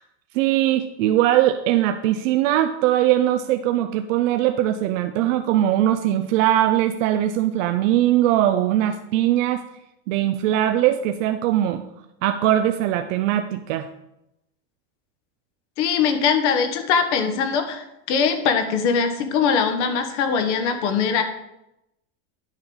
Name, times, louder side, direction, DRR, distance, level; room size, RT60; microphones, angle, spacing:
voice 1, 0.3-9.6 10.1-11.8 12.2-13.9, right 12 dB, 85° right, 8 dB, 0.7 m, -20 dB
voice 2, 15.8-21.2, left 6 dB, 65° left, 7 dB, 1.4 m, -21 dB
9.7 x 3.9 x 6.7 m, 0.86 s
supercardioid pair, 165°, 37 cm